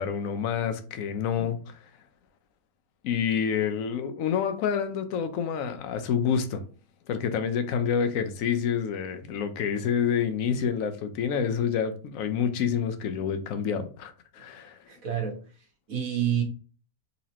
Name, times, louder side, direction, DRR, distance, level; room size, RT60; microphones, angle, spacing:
voice 1, 0.0-1.8 3.0-6.6 7.1-14.8, left 7 dB, 70° left, 0.8 m, -28 dB
voice 2, 14.9-16.4, right 9 dB, 55° right, 1.4 m, -29 dB
4.0 x 2.9 x 2.7 m
omnidirectional pair, 1.8 m